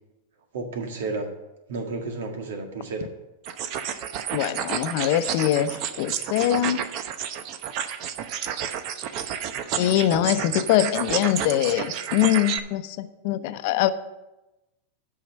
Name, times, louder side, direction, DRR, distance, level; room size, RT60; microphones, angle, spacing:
voice 1, 0.5-1.3 1.7-3.1, right 3 dB, 80° right, 3 dB, 1.9 m, -31 dB
sound 1, 3.4-12.6, right 9 dB, 50° right, 0.7 m, -31 dB
voice 2, 4.3-6.8 9.8-13.9, left 12 dB, 60° left, 11 dB, 0.7 m, -23 dB
8.4 x 5.7 x 7.5 m, 1.0 s
supercardioid pair, 130°, 0 cm